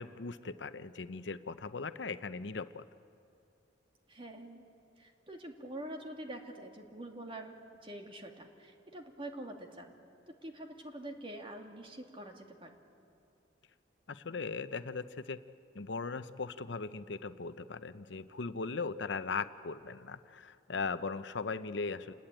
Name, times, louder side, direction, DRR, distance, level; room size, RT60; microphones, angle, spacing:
voice 1, 0.0-2.8 14.1-15.4 15.7-22.1, left 4 dB, 65° left, 12 dB, 0.7 m, -38 dB
voice 2, 4.1-4.6 5.0-9.9 10.3-12.8, right 1 dB, 30° right, 3 dB, 2.2 m, -46 dB
28.0 x 20.5 x 9.0 m, 2.6 s
head